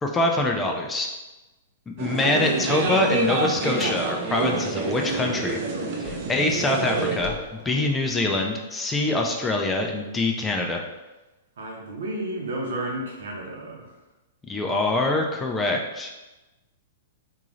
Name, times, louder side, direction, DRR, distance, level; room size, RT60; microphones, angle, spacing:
voice 1, 0.0-1.1 1.9-5.6 6.0-7.3 7.7-10.8 14.5-16.1, left 2 dB, 10° left, 2 dB, 0.3 m, -24 dB
sound 1, 2.0-7.2, right 3 dB, 45° right, 0.6 m, -27 dB
Car, 3.7-6.5 6.8-8.6, left 4 dB, 30° left, 0.8 m, -43 dB
voice 2, 11.6-13.9, right 1 dB, 85° right, -1 dB, 0.9 m, -32 dB
3.8 x 2.5 x 3.0 m, 1.1 s
hypercardioid pair, 150°, 0 cm